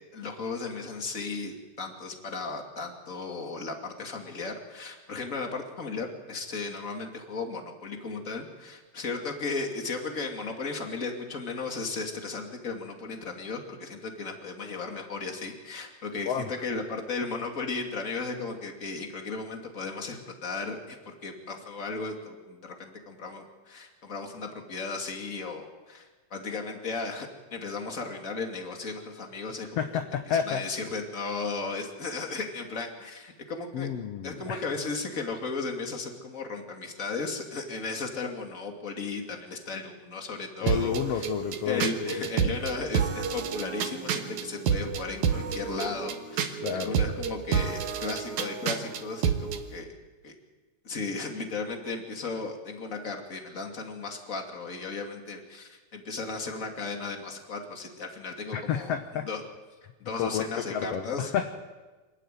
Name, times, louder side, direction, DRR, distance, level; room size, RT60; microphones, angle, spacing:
voice 1, 0.1-29.9 30.3-33.9 34.2-41.3 41.7-49.9 50.2-50.3 50.8-59.4 60.0-61.3, left 4 dB, 25° left, 3 dB, 2.5 m, -35 dB
voice 2, 29.8-30.6 33.7-34.7 40.6-42.3 46.6-47.0 58.5-59.3 60.2-61.5, left 8 dB, 65° left, 6 dB, 1.8 m, -30 dB
sound 1, 40.7-49.6, right 7 dB, 70° right, 2.5 m, -29 dB
27.0 x 12.0 x 9.3 m, 1.3 s
omnidirectional pair, 3.8 m